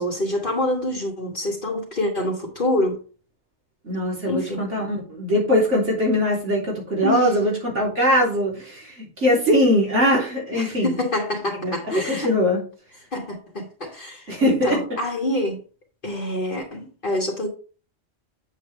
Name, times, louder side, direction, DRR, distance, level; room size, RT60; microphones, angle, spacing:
voice 1, 0.0-3.0 4.3-4.6 7.0-7.6 10.5-12.3 13.1-15.6 16.0-17.5, left 1 dB, 50° left, 1.5 m, -26 dB
voice 2, 3.8-10.9 11.6-11.8 12.1-12.6 14.3-14.8, equal, 85° right, 3.4 m, -21 dB
7.6 x 7.2 x 3.2 m
omnidirectional pair, 1.2 m